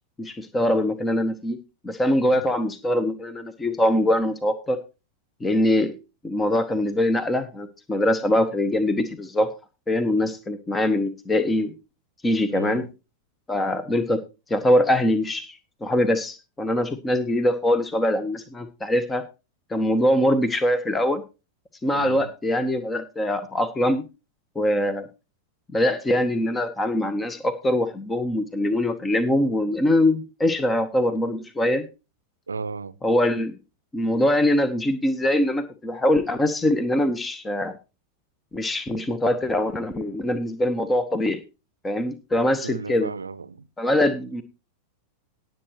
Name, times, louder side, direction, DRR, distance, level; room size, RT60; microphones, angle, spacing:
voice 1, 0.2-1.6 1.8-4.8 5.4-5.9 6.2-9.5 9.9-11.7 12.2-12.8 13.5-14.2 14.5-19.2 19.7-21.2 21.8-24.0 24.5-25.1 25.7-31.8 33.0-33.6 33.9-37.7 38.5-41.4 41.8-43.1 43.8-44.4, left 1 dB, 15° left, 1.0 m, -23 dB
voice 2, 12.5-12.9 21.9-22.3 32.5-33.0 42.6-43.7, right 4 dB, 75° right, 0.7 m, -34 dB
18.5 x 7.8 x 3.0 m
figure-of-eight pair, 90°, 0 cm